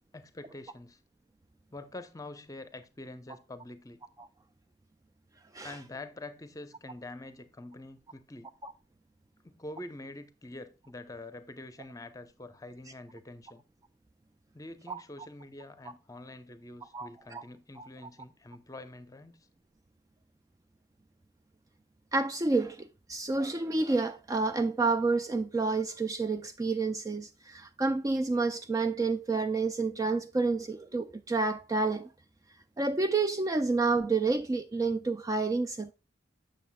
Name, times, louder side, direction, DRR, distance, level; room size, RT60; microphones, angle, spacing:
voice 1, 0.1-1.0 1.7-4.0 5.6-8.5 9.4-13.6 14.5-19.5, left 2 dB, 20° left, 0.7 m, -46 dB
voice 2, 16.9-17.4 17.8-17.9 22.1-32.1 32.8-35.9, right 3 dB, 20° right, 0.3 m, -29 dB
7.5 x 6.7 x 2.2 m
head